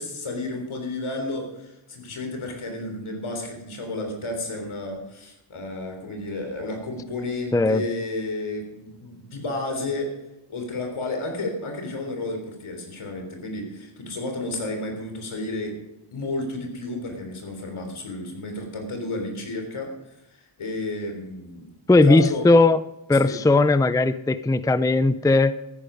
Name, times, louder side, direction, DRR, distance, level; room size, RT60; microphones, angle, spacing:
voice 1, 0.0-10.1 10.5-15.8 16.1-21.7 22.0-22.5 23.1-23.4, left 2 dB, 80° left, 3 dB, 3.7 m, -32 dB
voice 2, 21.9-22.8 23.1-25.5, left 2 dB, 5° left, 14 dB, 0.5 m, -18 dB
13.5 x 10.5 x 5.1 m, 0.92 s
cardioid pair, 55°, 49 cm